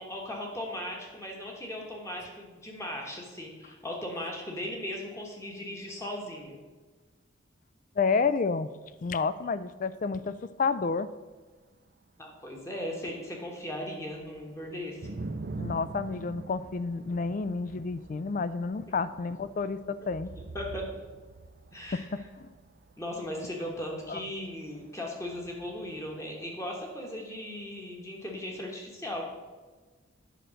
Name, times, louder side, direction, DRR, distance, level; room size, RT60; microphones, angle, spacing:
voice 1, 0.0-6.6 12.2-15.1 20.4-20.8 21.7-22.1 23.0-29.3, left 1 dB, 15° left, 0 dB, 1.3 m, -38 dB
voice 2, 8.0-8.7 9.0-11.1 15.6-20.3 21.9-22.5 24.1-24.2, left 4 dB, 40° left, 14 dB, 0.3 m, -30 dB
sound 1, 8.9-9.0 13.5-13.6 13.9-26.2, right 3 dB, 50° right, 0.5 m, -45 dB
9.2 x 4.4 x 6.3 m, 1.3 s
head